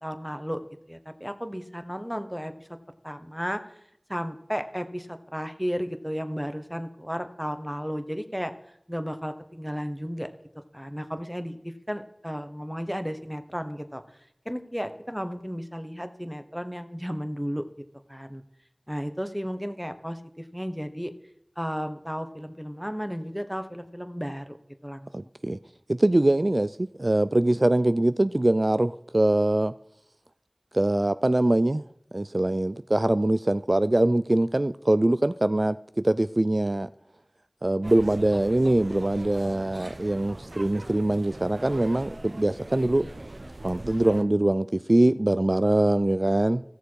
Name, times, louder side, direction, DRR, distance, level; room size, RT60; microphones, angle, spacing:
voice 1, 0.0-2.7 3.0-3.8 4.1-8.5 8.9-10.3 10.7-14.0 14.4-17.7 18.1-18.4 18.9-21.1 21.6-24.6 24.8-25.1, equal, ahead, 1.2 m, -33 dB
voice 2, 25.1-25.6 25.9-29.7 30.7-31.8 32.1-36.9 37.6-43.1 43.6-46.6, right 1 dB, 50° right, 0.3 m, -23 dB
sound 1, 37.8-44.2, right 2 dB, 80° right, 0.8 m, -41 dB
16.5 x 6.8 x 4.7 m
wide cardioid pair, 40°, 0 cm